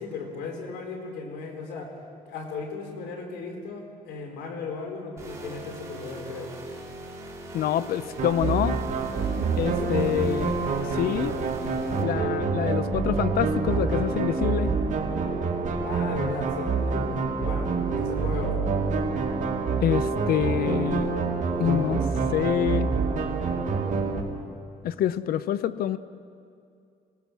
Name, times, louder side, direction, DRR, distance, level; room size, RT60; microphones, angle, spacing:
voice 1, 0.0-1.9 2.3-6.5 9.6-10.0 15.8-18.7, left 4 dB, 90° left, 3 dB, 4.0 m, -36 dB
sound 1, 5.2-12.0, right 1 dB, 15° right, 4.0 m, -41 dB
voice 2, 7.5-8.8 9.6-10.5 10.9-11.4 12.0-14.7 19.8-21.1 21.6-22.0 22.3-22.9 24.8-26.0, left 11 dB, 65° left, 15 dB, 0.7 m, -26 dB
sound 2, 8.2-24.2, right 4 dB, 45° right, 2.7 m, -27 dB
25.5 x 18.5 x 6.2 m, 2.4 s
cardioid pair, 110°, 17 cm